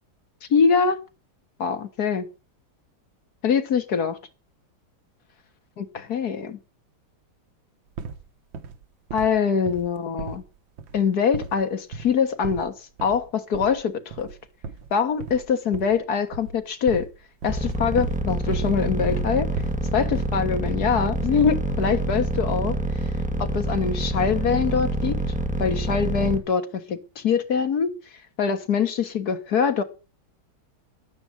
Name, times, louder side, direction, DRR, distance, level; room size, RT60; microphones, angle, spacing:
voice 1, 0.5-1.0 1.6-2.2 3.4-4.2 5.8-6.6 9.1-10.4 10.9-12.7 13.0-14.3 14.9-17.1 17.4-19.5 19.9-22.8 23.4-25.2 25.6-27.9 28.4-29.8, left 6 dB, 55° left, 1.8 m, -23 dB
sound 1, 8.0-8.3 8.5-8.8 9.1-9.4 9.7-10.5 10.8-11.1 11.3-11.6 11.9-12.2 12.4-12.7 13.0-13.3 13.5-13.8 14.1-14.4 14.6-16.1 16.3-17.2 17.4-18.2 18.5-18.8 19.0-19.8 20.1-20.5, right 4 dB, 85° right, 1.8 m, -36 dB
sound 2, 17.5-26.4, right 1 dB, 5° right, 1.7 m, -26 dB
11.5 x 9.6 x 7.4 m
omnidirectional pair, 2.0 m